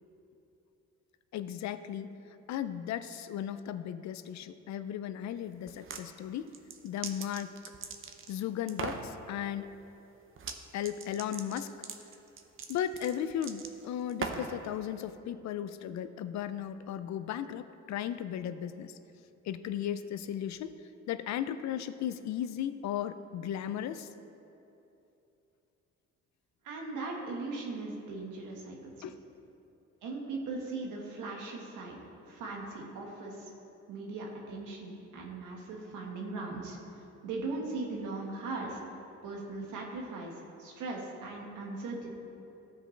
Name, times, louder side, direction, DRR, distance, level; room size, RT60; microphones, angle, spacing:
voice 1, 1.3-2.1 2.5-6.5 6.8-7.5 8.3-9.7 10.7-11.7 12.7-19.0 19.5-20.7 21.1-24.1 29.0-29.1, left 10 dB, 65° left, 12 dB, 0.5 m, -36 dB
sound 1, 5.7-6.0 6.5-8.3 8.7-9.1 10.4-10.6 10.8-14.6, right 5 dB, 45° right, 0.7 m, -40 dB
voice 2, 26.6-28.9 30.0-32.0 32.3-33.5 33.9-36.8 37.2-38.8 39.2-40.3 40.6-42.1, right 3 dB, 90° right, -1 dB, 1.5 m, -39 dB
14.5 x 5.1 x 3.3 m, 2.9 s
cardioid pair, 90°, 30 cm